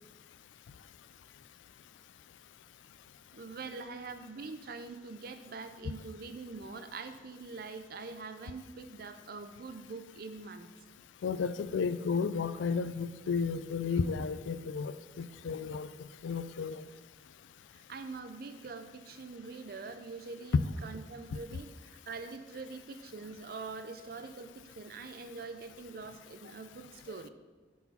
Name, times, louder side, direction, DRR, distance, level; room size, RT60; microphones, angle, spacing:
voice 1, 3.3-10.7 17.7-27.3, right 4 dB, 55° right, 9 dB, 0.5 m, -44 dB
voice 2, 11.2-15.9 16.2-16.8, left 5 dB, 90° left, 14 dB, 0.3 m, -33 dB
7.2 x 4.7 x 4.2 m, 1.3 s
head